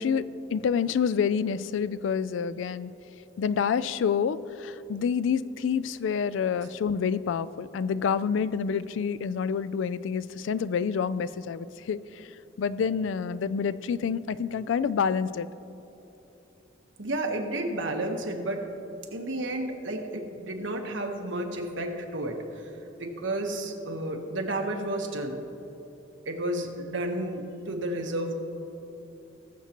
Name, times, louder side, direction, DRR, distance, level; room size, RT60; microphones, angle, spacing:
voice 1, 0.0-2.9 3.4-12.3 12.6-15.5, left 6 dB, 80° left, 16 dB, 0.3 m, -28 dB
voice 2, 17.0-18.7 19.1-22.7 23.0-25.4 26.2-28.4, right 1 dB, 80° right, 3 dB, 1.2 m, -32 dB
19.5 x 7.2 x 3.0 m, 3.0 s
head